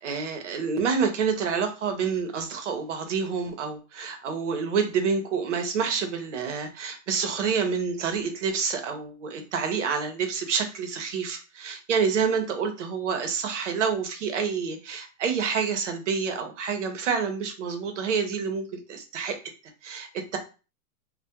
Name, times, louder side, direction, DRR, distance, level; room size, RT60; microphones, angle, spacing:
voice 1, 0.0-19.4 19.8-20.4, right 6 dB, 55° right, 6 dB, 0.6 m, -28 dB
2.2 x 2.0 x 2.7 m, 0.33 s
supercardioid pair, 180°, 45 cm